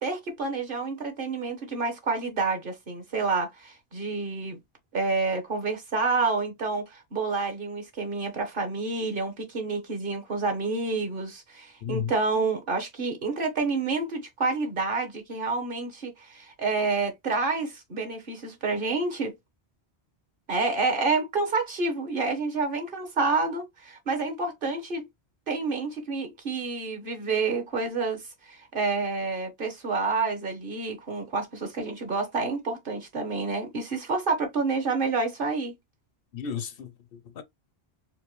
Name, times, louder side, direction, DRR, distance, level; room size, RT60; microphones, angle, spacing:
voice 1, 0.0-4.6 4.9-19.3 20.5-25.0 25.5-35.7, right 3 dB, 55° right, 1.3 m, -29 dB
voice 2, 11.8-12.1 36.3-37.4, left 8 dB, 65° left, 0.8 m, -34 dB
4.4 x 2.2 x 3.2 m
omnidirectional pair, 1.1 m